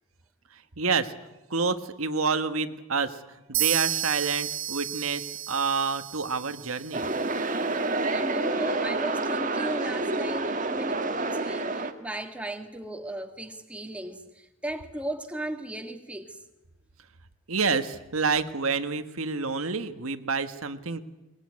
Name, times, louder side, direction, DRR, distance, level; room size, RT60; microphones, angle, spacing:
voice 1, 0.8-1.1 1.5-7.0 17.5-21.0, right 4 dB, 90° right, 9 dB, 1.5 m, -28 dB
sound 1, 3.5-7.3, right 13 dB, 70° right, 1.1 m, -32 dB
sound 2, 6.9-11.9, right 2 dB, 35° right, 1.6 m, -28 dB
voice 2, 8.1-16.4, right 1 dB, 5° right, 5 dB, 1.8 m, -36 dB
22.5 x 21.0 x 9.6 m, 0.98 s
head